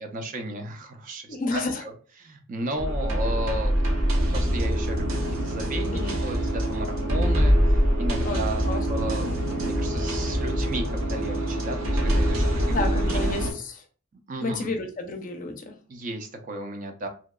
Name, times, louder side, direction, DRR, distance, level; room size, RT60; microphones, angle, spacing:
voice 1, 0.0-1.9 2.2-3.8 4.3-5.2 5.4-7.6 8.0-9.3 9.6-12.7 14.3-14.7 15.9-17.1, right 1 dB, 40° right, 5 dB, 0.4 m, -34 dB
voice 2, 1.3-1.8 5.9-6.2 8.2-8.9 12.7-13.8 14.4-15.8, left 3 dB, 40° left, 4 dB, 0.4 m, -31 dB
sound 1, 2.8-13.5, equal, 80° right, 0.6 m, -24 dB
2.7 x 2.2 x 2.2 m, 0.40 s
head